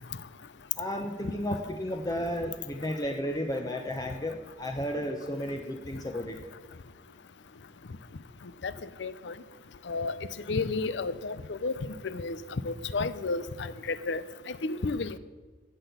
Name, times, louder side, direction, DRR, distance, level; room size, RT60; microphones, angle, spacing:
voice 1, 0.8-6.4, equal, 20° left, 3 dB, 0.8 m, -33 dB
voice 2, 9.0-9.3 9.9-10.1 10.5-11.7 12.0-12.4 12.6-15.2, left 3 dB, 90° left, 15 dB, 0.6 m, -32 dB
15.0 x 6.0 x 8.1 m, 1.4 s
head